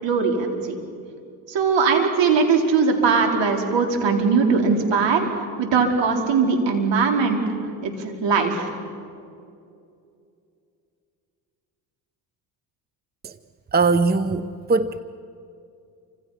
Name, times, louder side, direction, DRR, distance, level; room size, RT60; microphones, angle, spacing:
voice 1, 0.0-0.8 1.5-5.3 5.6-7.4 7.8-8.8, right 5 dB, 60° right, 3 dB, 4.7 m, -20 dB
voice 2, 13.7-15.0, right 3 dB, 20° right, 14 dB, 0.8 m, -21 dB
29.0 x 26.5 x 5.9 m, 2.5 s
hypercardioid pair, 65°, 49 cm